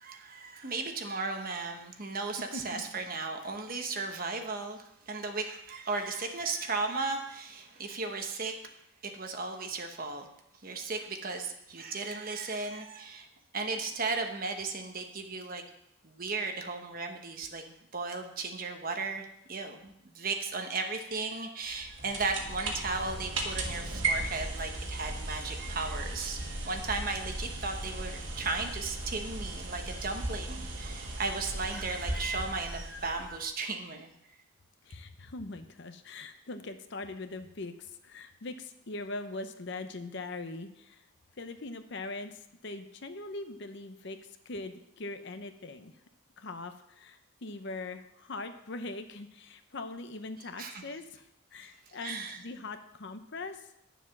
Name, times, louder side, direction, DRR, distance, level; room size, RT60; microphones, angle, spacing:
voice 1, 0.0-8.5 9.0-10.3 10.6-13.3 13.5-15.6 16.0-17.6 17.9-34.1 50.6-50.8 52.0-52.4, right 3 dB, 40° right, 4 dB, 1.1 m, -35 dB
sound 1, 21.7-33.5, right 2 dB, 55° right, 1.7 m, -37 dB
voice 2, 34.8-41.0 41.4-44.2 44.4-45.9 46.4-53.7, left 2 dB, 55° left, 8 dB, 0.8 m, -41 dB
9.8 x 7.2 x 5.9 m, 0.79 s
head